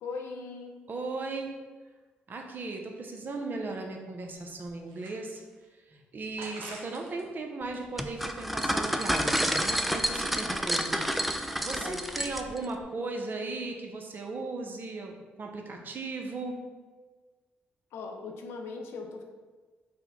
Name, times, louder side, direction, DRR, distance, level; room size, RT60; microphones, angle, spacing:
voice 1, 0.0-0.8 11.8-12.3 17.9-19.2, left 4 dB, 75° left, 3 dB, 0.5 m, -39 dB
voice 2, 0.9-1.5 2.3-5.4 5.9-11.1 11.6-16.6, right 3 dB, 50° right, 2 dB, 0.6 m, -37 dB
sound 1, 4.8-5.7 6.4-7.2 7.6-8.8, right 2 dB, 85° right, 0.7 m, -48 dB
sound 2, 8.0-12.6, equal, 5° right, 0.3 m, -29 dB
4.2 x 2.1 x 3.8 m, 1.3 s
supercardioid pair, 55°, 4 cm